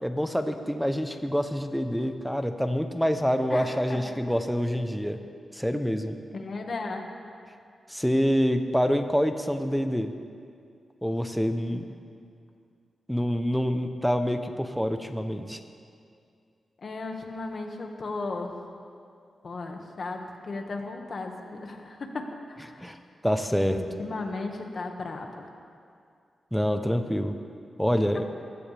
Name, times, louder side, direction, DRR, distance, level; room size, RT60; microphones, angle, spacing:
voice 1, 0.0-5.2 5.5-6.2 7.9-10.1 11.0-11.9 13.1-15.6 22.8-22.9 23.2-23.8 26.5-27.3 27.8-28.2, equal, ahead, 7 dB, 0.8 m, -26 dB
voice 2, 3.5-4.0 6.3-7.0 16.8-18.5 19.4-22.8 23.7-25.4, left 3 dB, 55° left, 3 dB, 1.8 m, -35 dB
22.5 x 15.5 x 3.5 m, 2.4 s
cardioid pair, 90°, 0 cm